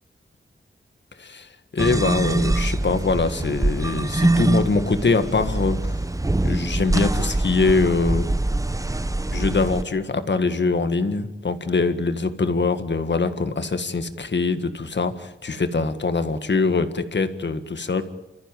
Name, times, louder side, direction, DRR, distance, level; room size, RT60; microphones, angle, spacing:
voice 1, 1.2-5.9 6.4-8.3 9.3-18.0, left 4 dB, 60° left, 9 dB, 1.8 m, -23 dB
sound 1, 1.8-9.8, right 2 dB, 15° right, 0.8 m, -24 dB
29.5 x 14.0 x 9.2 m, 1.0 s
wide cardioid pair, 115°, 21 cm